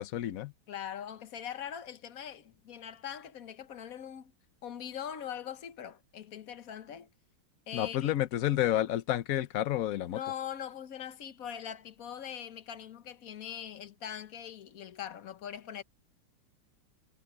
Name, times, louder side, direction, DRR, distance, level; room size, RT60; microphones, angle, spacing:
voice 1, 0.0-0.5 7.7-10.2, left 12 dB, 75° left, 0.7 m, -30 dB
voice 2, 0.7-4.3 4.6-7.1 7.7-8.1 10.1-15.8, left 9 dB, 50° left, 1.2 m, -42 dB
omnidirectional pair, 2.3 m